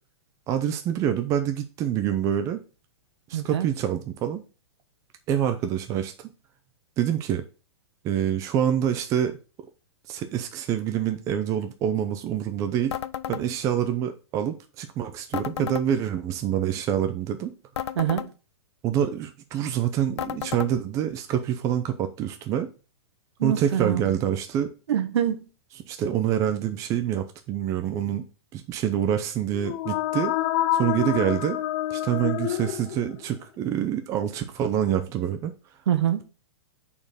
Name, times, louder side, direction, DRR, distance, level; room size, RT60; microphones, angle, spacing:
voice 1, 0.5-2.6 3.3-4.4 5.3-6.3 7.0-7.4 8.0-9.4 10.1-13.0 13.3-17.5 17.9-18.0 18.8-22.7 23.4-24.7 25.9-28.2 28.5-30.3 30.7-31.6 31.9-35.5, right 10 dB, 20° right, 0.7 m, -26 dB
voice 2, 3.3-3.7 18.0-18.3 23.4-24.0 24.9-25.5 35.9-36.2, right 10 dB, 80° right, 1.3 m, -24 dB
sound 1, 12.9-13.4 15.3-15.9 17.7-18.3 20.2-20.7, left 10 dB, 90° left, 0.5 m, -32 dB
sound 2, 29.5-33.4, left 13 dB, 30° left, 0.4 m, -27 dB
5.6 x 4.5 x 6.4 m
hypercardioid pair, 160°, 14 cm